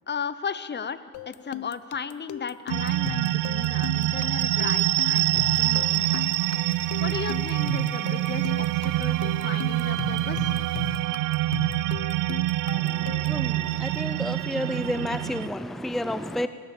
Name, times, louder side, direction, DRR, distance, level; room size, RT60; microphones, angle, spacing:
voice 1, 0.1-6.3 7.0-10.5, left 6 dB, 35° left, 0.9 m, -35 dB
sound 1, 1.1-13.5, left 15 dB, 85° left, 0.5 m, -38 dB
sound 2, 2.7-15.5, right 17 dB, 90° right, 0.5 m, -26 dB
sound 3, 5.0-11.0, right 5 dB, 70° right, 4.9 m, -52 dB
voice 2, 12.7-16.5, left 1 dB, ahead, 0.6 m, -31 dB
29.0 x 13.5 x 7.2 m
cardioid pair, 90°, 30 cm